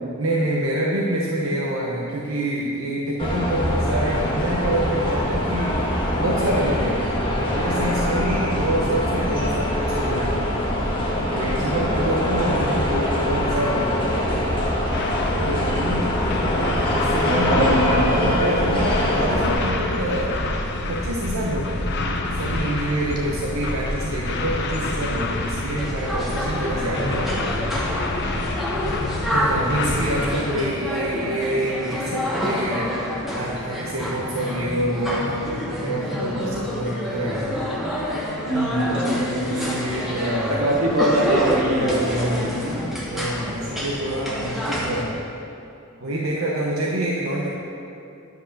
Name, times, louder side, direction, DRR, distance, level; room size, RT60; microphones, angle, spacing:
voice 1, 0.2-5.8 6.2-7.0 7.4-10.4 11.3-14.1 15.4-17.7 18.1-20.3 20.9-21.9 22.4-27.8 29.3-32.9 33.3-37.7 39.4-40.8 41.8-42.8 43.1-45.2 46.0-47.5, right 1 dB, 65° right, -4 dB, 1.0 m, -27 dB
Ambient People Noise Large, 3.2-19.5, left 1 dB, 25° left, 1.4 m, -23 dB
sound 1, 14.9-30.3, left 2 dB, 50° left, 0.8 m, -28 dB
voice 2, 16.3-16.7 17.2-18.3 38.5-39.8 40.5-42.8, right 1 dB, 90° right, -4 dB, 2.3 m, -23 dB
sound 2, 25.8-45.0, equal, ahead, 1.3 m, -28 dB
11.0 x 5.2 x 6.5 m, 2.6 s
head